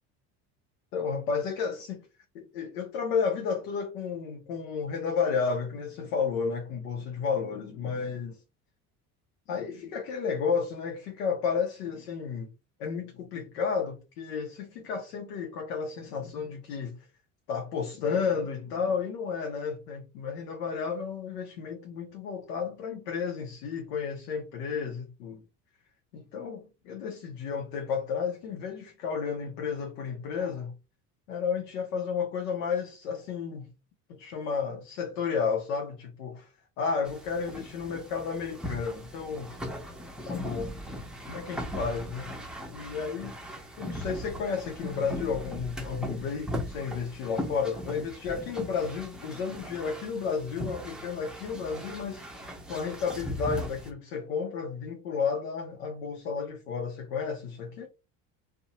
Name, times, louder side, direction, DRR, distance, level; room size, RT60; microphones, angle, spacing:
voice 1, 0.9-2.1 2.3-8.3 9.5-12.5 12.8-17.1 17.5-25.4 26.1-30.7 31.3-33.7 34.1-39.5 40.3-40.7 41.3-42.3 42.7-57.9, left 6 dB, 85° left, 0.6 m, -32 dB
sound 1, 37.0-53.9, equal, ahead, 0.5 m, -39 dB
2.6 x 2.1 x 2.7 m
hypercardioid pair, 70°, 45 cm